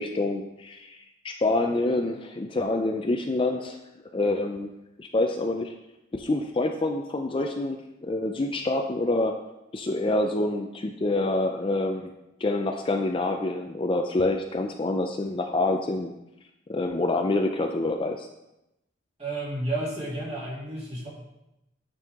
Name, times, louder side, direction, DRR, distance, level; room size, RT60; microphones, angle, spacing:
voice 1, 0.0-3.8 4.1-4.7 5.0-5.7 6.1-9.4 9.7-12.1 12.4-16.1 16.7-18.3, left 2 dB, 25° left, 4 dB, 0.4 m, -27 dB
voice 2, 19.2-21.1, right 2 dB, 35° right, -6 dB, 2.6 m, -31 dB
9.2 x 5.5 x 3.6 m, 0.91 s
head